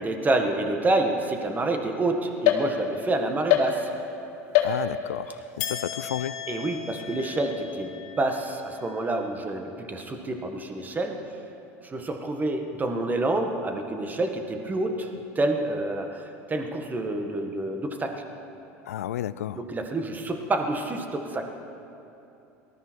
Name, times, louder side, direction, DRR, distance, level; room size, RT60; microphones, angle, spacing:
voice 1, 0.0-3.9 6.5-11.2 11.8-18.2 19.5-21.4, right 2 dB, 20° right, 4 dB, 1.7 m, -28 dB
sound 1, 2.5-3.1 3.5-4.2 4.5-5.2 5.6-9.1, left 9 dB, 65° left, 1.9 m, -28 dB
voice 2, 4.6-6.4 18.9-19.6, left 11 dB, 90° left, 17 dB, 0.4 m, -32 dB
18.5 x 13.0 x 4.7 m, 2.8 s
hypercardioid pair, 85°, 8 cm